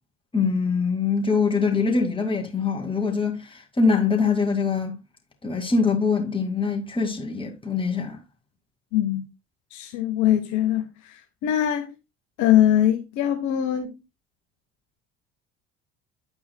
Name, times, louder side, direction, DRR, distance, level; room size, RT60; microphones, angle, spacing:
voice 1, 0.3-5.0 5.4-8.2, left 4 dB, 15° left, 2.2 m, -23 dB
voice 2, 8.9-9.3 9.7-11.9 12.4-14.0, left 11 dB, 50° left, 1.1 m, -22 dB
10.0 x 8.4 x 2.2 m
figure-of-eight pair, 60°, 38 cm